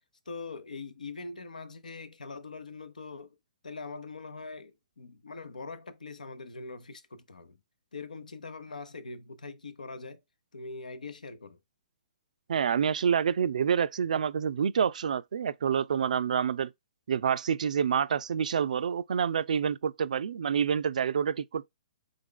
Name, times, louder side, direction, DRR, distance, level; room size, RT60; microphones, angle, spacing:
voice 1, 0.3-3.4 3.6-7.6 7.9-10.2 10.5-11.6, left 4 dB, 85° left, 0.7 m, -42 dB
voice 2, 12.5-16.7 17.1-21.7, right 7 dB, 70° right, 0.4 m, -27 dB
3.7 x 3.5 x 3.7 m
hypercardioid pair, 130°, 4 cm